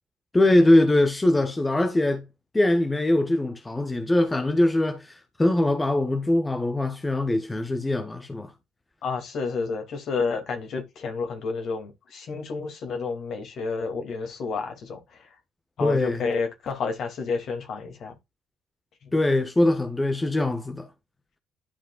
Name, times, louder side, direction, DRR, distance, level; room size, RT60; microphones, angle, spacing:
voice 1, 0.3-2.2 2.5-8.5 15.8-16.2 19.1-20.9, left 1 dB, 20° left, 1.4 m, -22 dB
voice 2, 9.0-15.2 15.8-18.1, left 4 dB, 55° left, 2.5 m, -30 dB
11.5 x 5.1 x 2.4 m
figure-of-eight pair, 45°, 0 cm